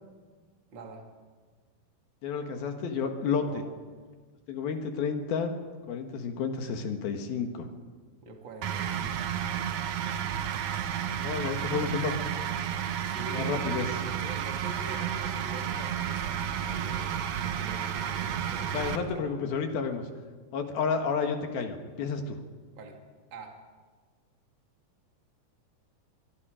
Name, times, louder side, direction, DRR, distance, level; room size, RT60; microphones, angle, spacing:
voice 1, 0.7-1.1 3.4-3.7 8.2-9.3 13.1-19.3 22.8-23.0 23.3-23.6, right 3 dB, 35° right, 1 dB, 2.7 m, -44 dB
voice 2, 2.2-3.5 4.5-5.5 5.9-7.7 11.2-12.2 13.3-13.9 18.7-20.1 20.5-22.4, left 5 dB, 70° left, 5 dB, 3.4 m, -31 dB
sound 1, 8.6-19.0, right 9 dB, 80° right, 1.5 m, -32 dB
24.5 x 23.0 x 5.1 m, 1.5 s
omnidirectional pair, 4.7 m